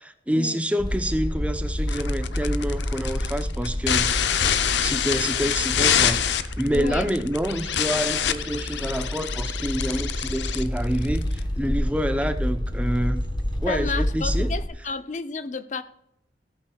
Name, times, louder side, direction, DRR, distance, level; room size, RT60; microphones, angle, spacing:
voice 1, 0.0-4.2 4.8-13.2 13.6-14.5, equal, 10° right, 0.6 m, -27 dB
sound 1, 0.8-14.7, equal, 25° left, 1.0 m, -29 dB
sound 2, 1.9-11.4, left 9 dB, 85° left, 0.6 m, -26 dB
voice 2, 6.7-7.1 13.7-15.8, left 4 dB, 40° left, 0.5 m, -31 dB
17.0 x 8.6 x 2.3 m
head